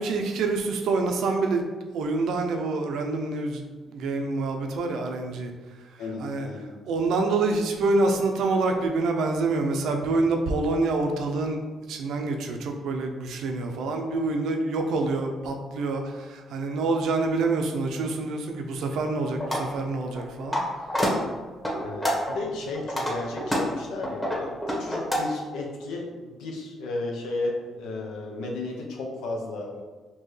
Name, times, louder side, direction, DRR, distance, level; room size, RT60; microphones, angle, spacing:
voice 1, 0.0-1.6 1.9-5.5 5.8-6.5 6.8-11.6 11.9-20.6, right 3 dB, 80° right, 4 dB, 0.5 m, -26 dB
voice 2, 6.0-6.7 21.8-29.7, left 2 dB, 85° left, 0 dB, 0.7 m, -34 dB
sound 1, 19.4-19.6 20.1-20.6 20.9-21.1 21.6-22.4 22.7-25.2, equal, 15° left, 1.1 m, -27 dB
4.4 x 2.7 x 3.1 m, 1.4 s
cardioid pair, 75°, 0 cm